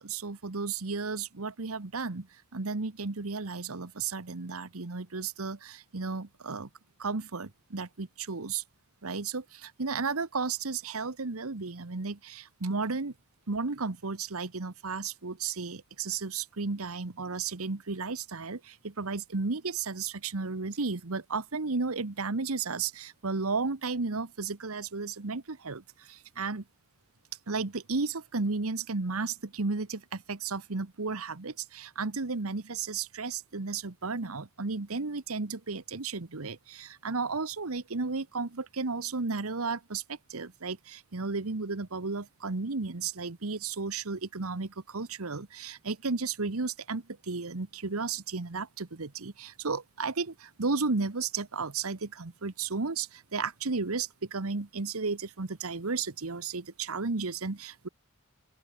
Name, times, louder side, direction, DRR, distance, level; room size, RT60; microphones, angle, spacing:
voice 1, 0.0-2.3 2.5-6.7 7.0-8.6 9.0-13.1 13.5-26.6 27.5-57.9, right 4 dB, 80° right, 1.2 m, -33 dB
open air
head